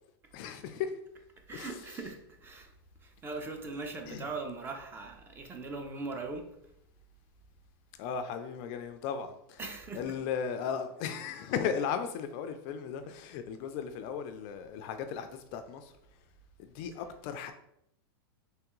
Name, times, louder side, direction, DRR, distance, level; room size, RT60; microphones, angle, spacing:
voice 1, 0.3-1.0 1.5-2.0 4.1-4.3 8.0-9.6 9.9-15.9 16.6-17.5, left 7 dB, 40° left, 0.3 m, -36 dB
voice 2, 1.5-2.7 3.0-6.5 9.6-10.2 17.0-17.1, right 3 dB, 15° right, 0.5 m, -40 dB
3.4 x 3.2 x 3.0 m
supercardioid pair, 135°, 13 cm